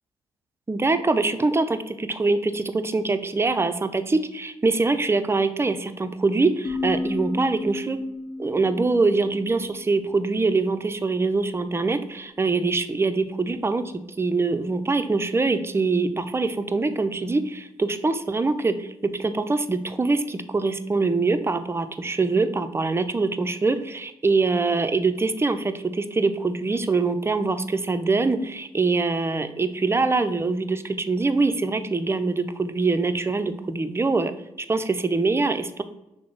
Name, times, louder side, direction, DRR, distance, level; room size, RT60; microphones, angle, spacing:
voice 1, 0.7-8.0 8.4-34.3 34.7-35.8, right 3 dB, 15° right, 10 dB, 0.4 m, -24 dB
sound 1, 6.6-10.2, left 2 dB, ahead, 1.4 m, -33 dB
6.0 x 2.0 x 4.3 m, 0.88 s
hypercardioid pair, 45°, 15 cm